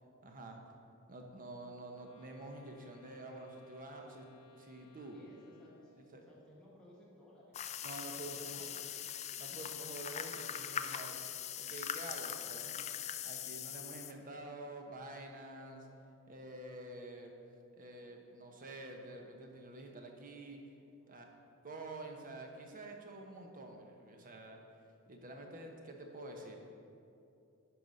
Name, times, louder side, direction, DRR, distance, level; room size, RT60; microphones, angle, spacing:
voice 1, 0.2-0.6 1.1-4.2 4.6-5.2 6.1-6.2 7.8-8.7 9.4-11.2 11.6-12.8 13.2-15.9 16.3-17.3 17.8-20.6 21.1-21.2 21.6-24.6 25.1-26.6, right 2 dB, 40° right, 2 dB, 1.0 m, -48 dB
Wind instrument woodwind instrument, 1.9-6.3, left 3 dB, 90° left, 0.7 m, -64 dB
voice 2, 5.1-9.0 21.0-21.5, left 1 dB, 5° left, -7 dB, 1.9 m, -61 dB
sound 1, 7.5-14.1, left 9 dB, 30° left, 0.3 m, -41 dB
10.5 x 4.8 x 5.4 m, 2.6 s
head